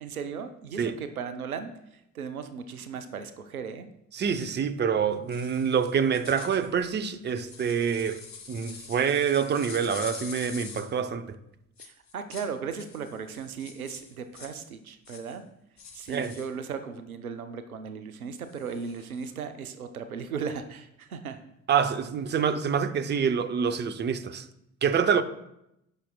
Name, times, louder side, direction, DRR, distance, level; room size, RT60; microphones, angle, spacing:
voice 1, 0.0-3.9 11.8-15.5 15.9-21.4, right 6 dB, 90° right, 0.6 m, -37 dB
voice 2, 4.1-8.2 8.5-11.4 16.1-16.3 21.7-24.5 24.8-25.2, right 7 dB, 25° right, 0.6 m, -26 dB
sound 1, 4.2-4.6 5.3-10.9 11.8-12.5 12.8-14.7 15.0-15.4 15.8-16.5 18.4-19.3, left 5 dB, 40° left, 1.9 m, -45 dB
15.5 x 5.9 x 2.2 m
figure-of-eight pair, 50°, 42 cm